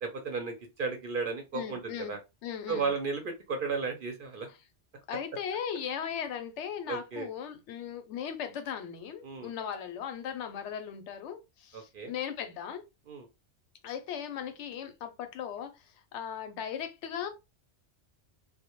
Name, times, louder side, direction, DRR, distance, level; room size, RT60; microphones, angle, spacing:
voice 1, 0.0-2.2 2.7-4.5 6.9-7.3 9.2-9.5 11.9-12.1 13.1-13.3, right 4 dB, 60° right, 0.6 m, -34 dB
voice 2, 1.5-2.1 2.4-2.9 4.5-4.6 5.1-12.8 13.8-17.3, left 8 dB, 75° left, 0.9 m, -38 dB
2.1 x 2.1 x 2.8 m
omnidirectional pair, 1.2 m